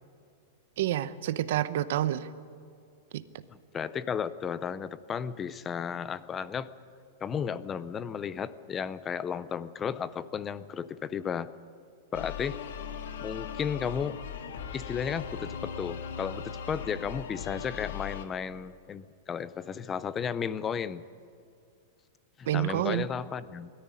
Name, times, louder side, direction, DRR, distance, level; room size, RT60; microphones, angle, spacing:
voice 1, 0.8-2.3 3.1-3.2 22.5-23.1, right 13 dB, 55° right, 13 dB, 0.8 m, -28 dB
voice 2, 3.5-6.7 7.2-11.5 12.1-12.6 13.2-14.2 14.7-21.0 22.4-23.7, left 7 dB, 15° left, 16 dB, 0.5 m, -34 dB
sound 1, 12.1-18.2, left 7 dB, 80° left, 1.7 m, -39 dB
21.5 x 14.0 x 9.8 m, 2.4 s
supercardioid pair, 170°, 0 cm